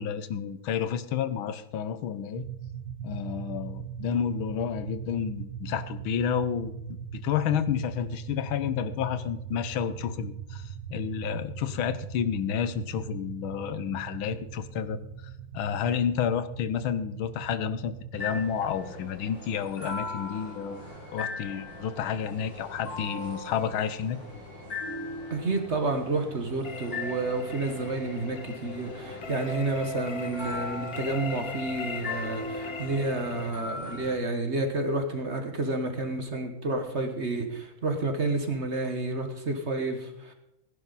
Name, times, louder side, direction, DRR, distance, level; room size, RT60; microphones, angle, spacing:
voice 1, 0.0-2.4 3.0-6.7 7.1-15.0 15.5-20.8 21.1-24.2, left 8 dB, 85° left, 13 dB, 1.6 m, -30 dB
sound 1, 2.3-18.7, right 7 dB, 85° right, 1.7 m, -40 dB
sound 2, 18.2-34.2, left 2 dB, 60° left, 7.0 m, -39 dB
voice 2, 25.3-40.3, right 2 dB, 35° right, 5 dB, 1.5 m, -30 dB
sound 3, 26.6-33.5, left 5 dB, 45° left, 0.8 m, -39 dB
17.0 x 11.0 x 4.1 m, 0.84 s
omnidirectional pair, 2.2 m